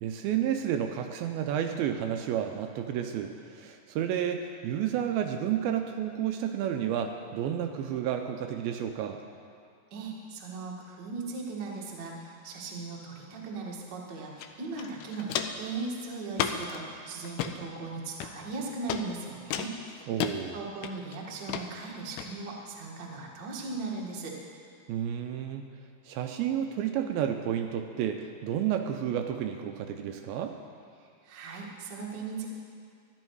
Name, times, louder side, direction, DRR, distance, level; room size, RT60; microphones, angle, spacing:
voice 1, 0.0-9.2 20.1-20.6 24.9-25.7 26.1-30.6, right 9 dB, 80° right, 5 dB, 2.3 m, -31 dB
voice 2, 9.9-19.7 20.0-20.1 20.5-24.4 31.2-32.5, right 3 dB, 55° right, -2 dB, 1.2 m, -38 dB
Walk footsteps, 14.4-14.5 14.8-15.7 16.3-16.8 17.2-17.5 18.2-18.6 18.9-19.0 19.5-20.3 20.8-21.2 21.5-21.7 22.2-22.3, left 9 dB, 85° left, 2.5 m, -32 dB
13.0 x 11.5 x 4.7 m, 2.4 s
omnidirectional pair, 4.5 m